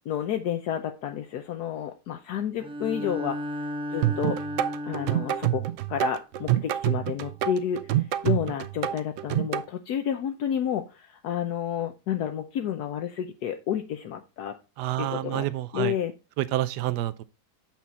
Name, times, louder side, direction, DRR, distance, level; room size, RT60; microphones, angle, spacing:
voice 1, 0.1-3.4 3.9-4.4 4.8-5.6 5.9-14.6 15.0-15.5 15.7-16.1, left 9 dB, 75° left, 1.3 m, -30 dB
Bowed string instrument, 2.6-5.7, equal, 5° right, 0.6 m, -34 dB
sound 1, 4.0-9.6, right 12 dB, 65° right, 0.8 m, -27 dB
voice 2, 14.8-15.9 16.4-17.2, right 14 dB, 80° right, 1.2 m, -28 dB
7.3 x 6.0 x 4.1 m
omnidirectional pair, 1.7 m